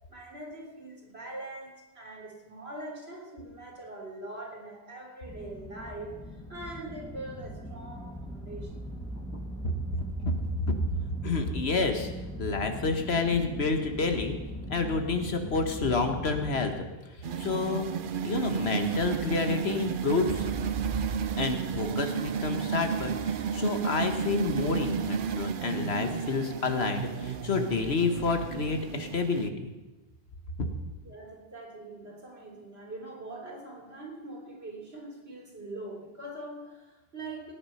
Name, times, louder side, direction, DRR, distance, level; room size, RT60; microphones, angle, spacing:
voice 1, 0.1-6.2 6.5-8.8 31.0-37.5, right 2 dB, 90° right, -1 dB, 3.6 m, -42 dB
sound 1, 5.2-16.7, equal, 5° left, 1.6 m, -40 dB
voice 2, 9.3-9.7 10.3-10.8 11.2-12.1 12.4-14.4 14.7-16.7 17.4-17.9 18.2-20.5 21.4-29.7, left 4 dB, 85° left, 6 dB, 1.7 m, -29 dB
sound 2, 17.2-29.5, right 7 dB, 60° right, 0.8 m, -32 dB
18.0 x 9.0 x 5.7 m, 1.1 s
omnidirectional pair, 1.0 m